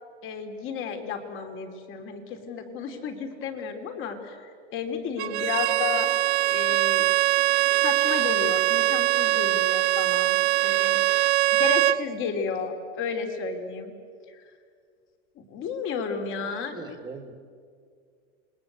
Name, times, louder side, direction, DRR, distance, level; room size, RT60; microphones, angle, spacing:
voice 1, 0.2-6.1 6.5-7.1 7.6-11.0 11.5-13.9 14.3-14.4 15.4-17.0, left 6 dB, 35° left, 5 dB, 3.3 m, -33 dB
Bowed string instrument, 5.2-12.0, right 15 dB, 75° right, 0.8 m, -22 dB
voice 2, 16.4-17.3, right 4 dB, 10° right, 7 dB, 2.1 m, -41 dB
28.0 x 21.0 x 8.3 m, 2.1 s
supercardioid pair, 135°, 35 cm